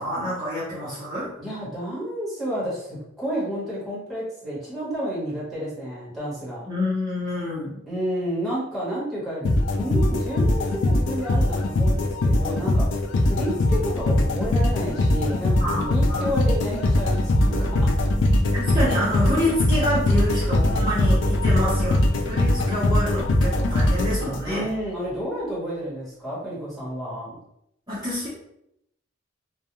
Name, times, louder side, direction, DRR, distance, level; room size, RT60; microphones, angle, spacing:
voice 1, 0.0-1.3 6.7-7.8 15.6-16.3 18.5-24.7 27.9-28.3, left 1 dB, 20° right, -11 dB, 0.8 m, -27 dB
voice 2, 1.4-6.6 7.9-9.5 9.8-17.6 24.4-27.4, equal, ahead, -9 dB, 1.1 m, -30 dB
sound 1, 9.4-24.7, left 1 dB, 70° left, 0.3 m, -21 dB
2.3 x 2.2 x 2.9 m, 0.78 s
head